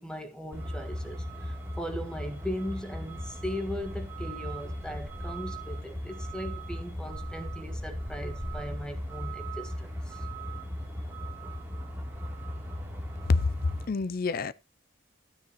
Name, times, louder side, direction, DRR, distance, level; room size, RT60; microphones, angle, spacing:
voice 1, 0.0-10.2, equal, 5° left, 1.7 m, -38 dB
Truck, 0.5-13.9, equal, 10° right, 3.0 m, -37 dB
voice 2, 13.9-14.5, left 3 dB, 50° left, 0.5 m, -26 dB
13.0 x 9.4 x 3.0 m
head